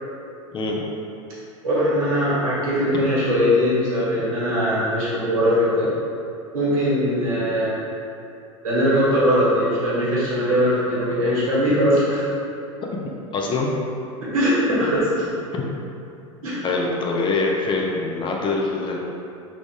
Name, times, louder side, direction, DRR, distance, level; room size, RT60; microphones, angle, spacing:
voice 1, 1.6-5.9 6.5-7.8 8.6-12.2 14.3-15.2 16.4-16.5, equal, 80° right, -9 dB, 1.5 m, -20 dB
voice 2, 13.3-13.7 15.5-15.6 16.6-19.0, left 3 dB, 30° left, -1 dB, 0.5 m, -24 dB
3.4 x 2.5 x 3.6 m, 2.6 s
hypercardioid pair, 90°, 17 cm